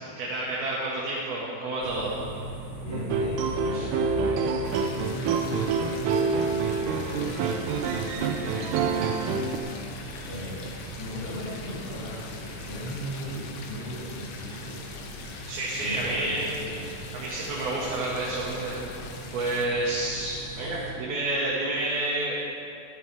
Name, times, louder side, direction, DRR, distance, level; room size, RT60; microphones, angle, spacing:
voice 1, 0.2-2.1 3.7-3.9 15.5-16.5 17.1-18.8 19.3-22.3, right 2 dB, 60° right, -6 dB, 3.4 m, -29 dB
sound 1, 1.8-20.9, right 2 dB, 25° right, 3.9 m, -41 dB
voice 2, 2.8-7.8 8.1-9.4 10.2-10.7 10.9-14.8 15.8-16.8, equal, 45° left, -10 dB, 5.2 m, -38 dB
sound 2, 2.9-9.6, right 5 dB, 85° right, 3.5 m, -27 dB
sound 3, 4.6-19.6, left 4 dB, 75° left, 3.5 m, -43 dB
25.5 x 11.5 x 3.6 m, 2.6 s
omnidirectional pair, 5.8 m